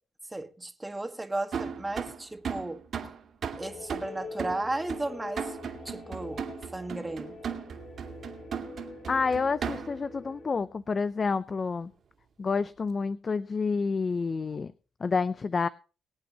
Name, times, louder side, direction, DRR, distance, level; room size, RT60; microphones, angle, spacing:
voice 1, 0.3-2.8 3.6-5.5 5.9-6.5 6.7-7.6, right 2 dB, 15° right, 1.8 m, -35 dB
sound 1, 1.5-10.1, right 7 dB, 55° right, 2.7 m, -37 dB
sound 2, 3.6-10.6, left 3 dB, 70° left, 4.5 m, -45 dB
voice 2, 9.1-11.9 12.4-14.7 15.0-15.7, left 4 dB, 35° left, 0.5 m, -29 dB
23.5 x 8.6 x 3.0 m
cardioid pair, 90°, 0 cm